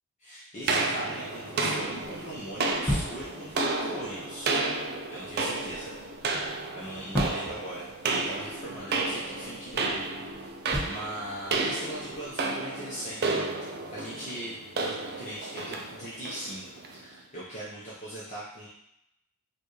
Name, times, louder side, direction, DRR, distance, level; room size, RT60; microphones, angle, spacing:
voice 1, 0.2-4.6 5.1-6.3 6.7-16.6 16.9-18.7, right 1 dB, 35° left, -9 dB, 1.0 m, -40 dB
sound 1, 0.6-12.3, left 1 dB, 5° left, 1.4 m, -39 dB
sound 2, 0.7-17.0, right 3 dB, 45° right, 0.5 m, -32 dB
5.0 x 2.5 x 3.2 m, 0.77 s
head